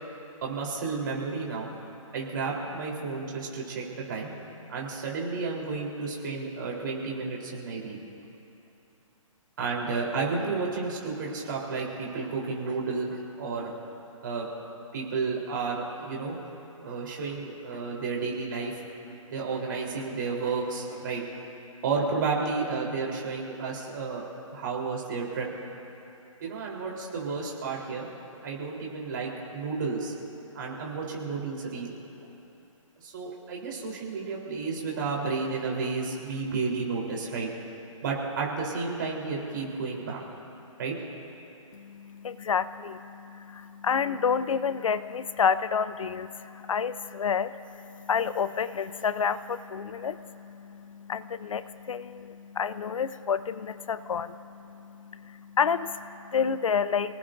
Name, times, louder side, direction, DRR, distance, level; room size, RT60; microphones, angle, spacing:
voice 1, 0.4-1.7 2.1-4.3 4.7-8.0 9.6-13.7 14.2-14.5 14.9-16.4 16.8-18.7 19.1-21.2 21.8-24.2 24.5-25.5 26.4-28.1 28.4-30.1 30.5-31.9 32.2-32.3 33.0-37.5 38.0-40.2 40.8-41.0, right 4 dB, 35° right, -2 dB, 3.6 m, -32 dB
voice 2, 41.7-57.2, left 6 dB, 70° left, 14 dB, 0.6 m, -30 dB
30.0 x 18.5 x 2.6 m, 2.9 s
hypercardioid pair, 175°, 17 cm